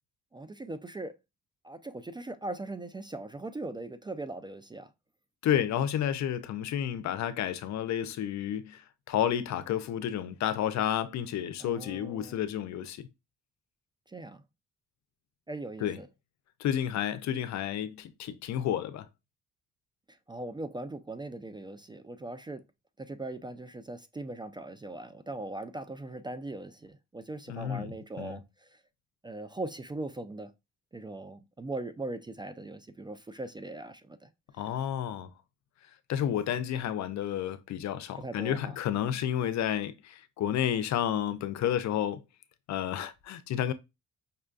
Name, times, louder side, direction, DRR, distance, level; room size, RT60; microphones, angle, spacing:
voice 1, 0.3-1.1 1.6-4.9 11.6-12.4 14.1-14.4 15.5-16.1 20.3-22.6 23.0-28.4 29.2-30.5 30.9-34.3 38.2-38.8, right 2 dB, 15° right, 0.3 m, -40 dB
voice 2, 5.4-8.8 9.1-13.1 15.8-16.0 16.6-19.1 27.5-28.4 34.6-35.3 36.1-42.2 42.7-43.7, left 10 dB, 65° left, 0.5 m, -31 dB
5.4 x 2.2 x 2.4 m
cardioid pair, 90°, 30 cm